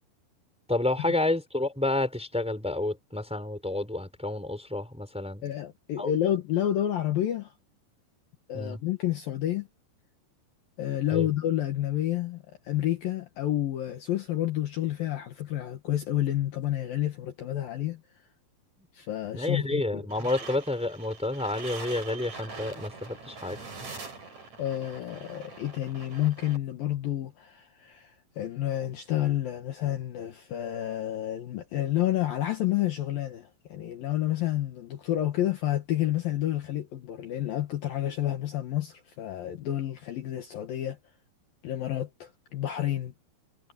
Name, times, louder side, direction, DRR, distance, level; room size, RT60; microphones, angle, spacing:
voice 1, 0.7-5.4 6.0-6.1 8.5-8.8 11.1-11.3 19.3-23.6, left 2 dB, ahead, 3.9 m, -30 dB
voice 2, 5.4-7.5 8.5-9.7 10.8-18.0 18.9-20.1 24.6-41.0 41.6-43.1, left 12 dB, 65° left, 2.8 m, -30 dB
sound 1, 20.1-26.6, right 4 dB, 40° right, 6.8 m, -43 dB
omnidirectional pair, 5.0 m